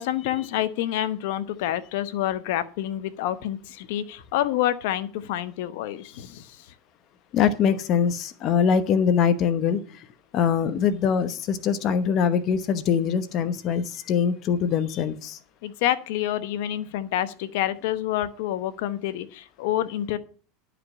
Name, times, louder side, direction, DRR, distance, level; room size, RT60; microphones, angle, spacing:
voice 1, 0.0-6.7 15.6-20.2, left 12 dB, 70° left, 13 dB, 0.9 m, -28 dB
voice 2, 7.3-9.8 10.3-15.4, left 7 dB, 45° left, 12 dB, 0.9 m, -23 dB
11.0 x 5.1 x 7.0 m, 0.39 s
supercardioid pair, 115°, 0 cm